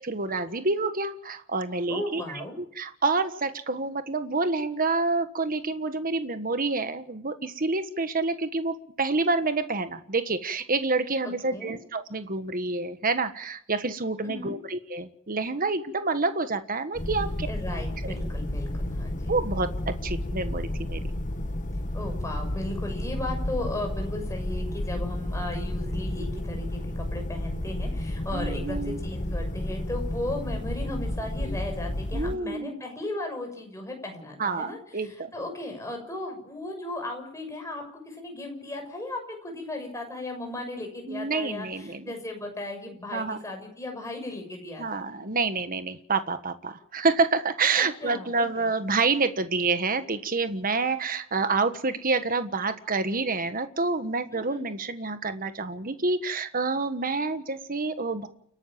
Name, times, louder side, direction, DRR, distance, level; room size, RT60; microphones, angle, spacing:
voice 1, 0.0-17.5 18.0-18.1 19.3-21.0 28.3-29.0 32.1-32.8 34.4-35.3 41.1-42.1 43.1-43.4 44.8-58.3, right 3 dB, 40° right, 10 dB, 1.4 m, -28 dB
voice 2, 1.9-2.5 11.2-11.7 14.2-14.6 17.5-19.3 21.9-44.9 47.7-48.7 54.3-54.6, left 2 dB, 15° left, 3 dB, 6.4 m, -36 dB
sound 1, 16.9-32.4, left 1 dB, 35° left, 1.2 m, -31 dB
29.5 x 12.0 x 7.5 m, 0.67 s
head